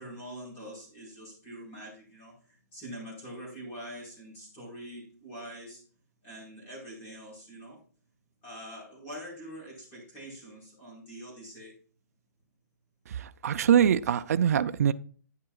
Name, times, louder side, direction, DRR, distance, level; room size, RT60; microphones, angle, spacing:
voice 1, 0.0-5.9 6.2-7.8 8.4-11.7, equal, 20° left, -3 dB, 4.5 m, -44 dB
voice 2, 13.1-14.9, right 9 dB, 60° right, 10 dB, 0.4 m, -24 dB
11.0 x 9.5 x 2.4 m, 0.41 s
hypercardioid pair, 175°, 10 cm